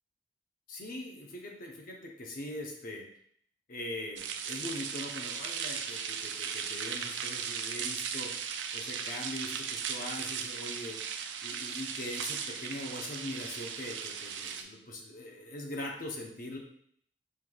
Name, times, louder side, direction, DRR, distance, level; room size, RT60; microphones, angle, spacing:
voice 1, 0.7-3.0 3.7-8.3 8.7-11.0 11.4-16.6, left 1 dB, 50° left, 1 dB, 0.8 m, -41 dB
sound 1, 4.2-14.6, right 7 dB, 75° right, 0.4 m, -37 dB
5.6 x 3.2 x 2.3 m, 0.65 s
head